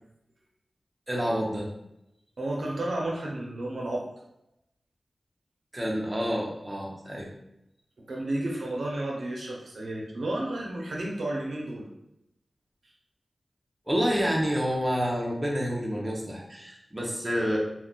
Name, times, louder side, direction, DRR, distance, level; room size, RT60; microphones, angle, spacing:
voice 1, 1.1-1.7 5.7-7.3 13.9-17.6, equal, 20° right, -3 dB, 0.7 m, -28 dB
voice 2, 2.4-4.1 8.1-11.9, right 1 dB, 75° right, -2 dB, 0.6 m, -32 dB
2.3 x 2.3 x 3.7 m, 0.84 s
wide cardioid pair, 75°, 0 cm